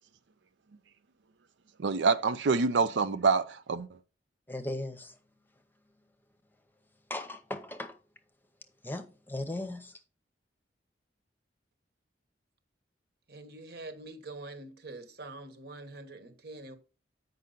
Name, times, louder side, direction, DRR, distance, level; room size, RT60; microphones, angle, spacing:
voice 1, 1.8-3.9, right 4 dB, 85° right, 0.5 m, -26 dB
voice 2, 4.5-5.2 7.1-8.0 8.8-10.0, left 1 dB, 10° left, 0.8 m, -37 dB
voice 3, 13.3-16.8, right 2 dB, 60° right, 1.3 m, -45 dB
8.8 x 5.4 x 3.9 m
head